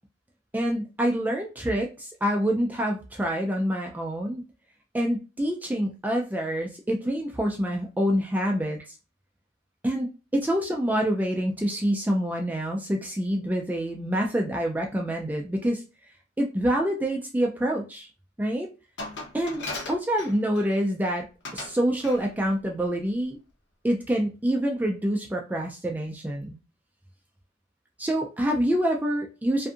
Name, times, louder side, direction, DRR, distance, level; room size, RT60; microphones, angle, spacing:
voice 1, 0.5-4.4 4.9-8.8 9.8-15.8 16.4-18.1 18.4-18.7 19.3-21.3 21.5-23.4 23.8-26.6 28.0-29.7, equal, 10° right, 0 dB, 0.3 m, -26 dB
Glass, 19.0-20.8 21.4-21.8 22.0-22.3, left 2 dB, 80° left, 0.8 m, -37 dB
2.6 x 2.4 x 2.5 m, 0.31 s
head